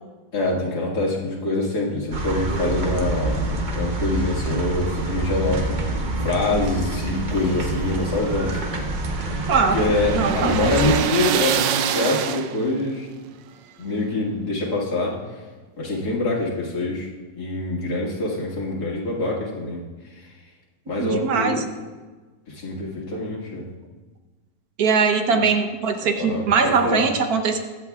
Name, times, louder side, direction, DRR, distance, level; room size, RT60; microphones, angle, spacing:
voice 1, 0.3-5.8 6.2-8.8 9.7-13.1 13.8-15.2 15.8-17.1 17.4-19.8 20.9-21.6 22.5-23.6 25.3-25.4 26.2-27.0, left 2 dB, 60° left, -4 dB, 2.5 m, -25 dB
sound 1, 2.1-11.0, right 2 dB, 40° right, 0.7 m, -27 dB
sound 2, 7.4-12.8, right 9 dB, 85° right, 1.3 m, -26 dB
voice 2, 9.5-11.0 21.0-21.6 24.8-27.6, right 5 dB, 65° right, 5 dB, 1.2 m, -21 dB
21.5 x 8.0 x 2.4 m, 1.3 s
omnidirectional pair, 1.9 m